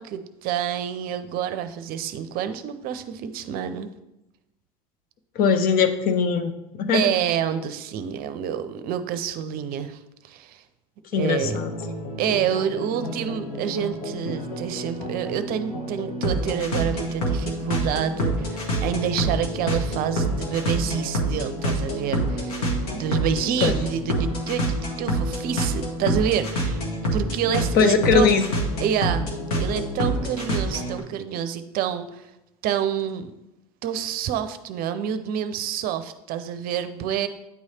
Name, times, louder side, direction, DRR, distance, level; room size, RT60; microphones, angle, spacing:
voice 1, 0.0-3.9 6.9-10.0 10.2-10.6 11.2-11.6 12.2-26.8 27.1-28.3 28.8-29.3 29.6-32.3 32.6-33.3 33.8-37.3, right 9 dB, 50° right, 11 dB, 0.6 m, -28 dB
voice 2, 5.4-7.1 11.1-11.7 23.6-23.7 27.7-28.5, left 6 dB, 50° left, 8 dB, 0.7 m, -20 dB
sound 1, 11.4-31.0, right 1 dB, 80° left, 1.5 m, -27 dB
9.3 x 3.2 x 4.2 m, 0.90 s
hypercardioid pair, 75°, 19 cm